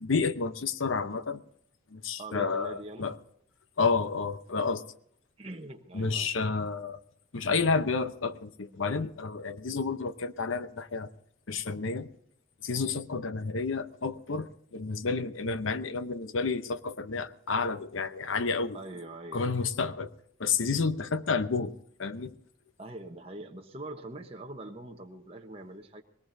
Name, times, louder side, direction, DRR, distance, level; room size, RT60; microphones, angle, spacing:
voice 1, 0.0-1.4 1.9-3.2 3.8-4.9 5.9-7.0 7.3-11.1 11.5-12.1 12.6-18.8 19.3-20.1 20.4-22.3, left 4 dB, 80° left, 12 dB, 0.8 m, -30 dB
voice 2, 2.2-3.1 5.4-6.3 12.7-12.9 18.7-19.5 22.8-26.0, right 2 dB, 30° right, 3 dB, 1.0 m, -43 dB
21.0 x 19.0 x 2.7 m, 0.67 s
head